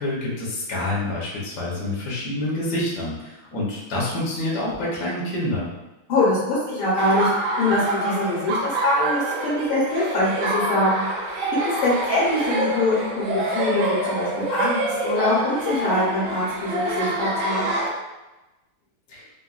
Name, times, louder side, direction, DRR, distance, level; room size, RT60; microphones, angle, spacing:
voice 1, 0.0-5.7 19.1-19.2, left 1 dB, 60° left, -5 dB, 1.0 m, -27 dB
voice 2, 6.1-11.3 11.6-17.6, left 1 dB, 80° left, -8 dB, 1.7 m, -23 dB
Laughter, 7.0-17.9, right 1 dB, 75° right, 1.4 m, -26 dB
3.9 x 2.2 x 2.3 m, 1.0 s
omnidirectional pair, 2.3 m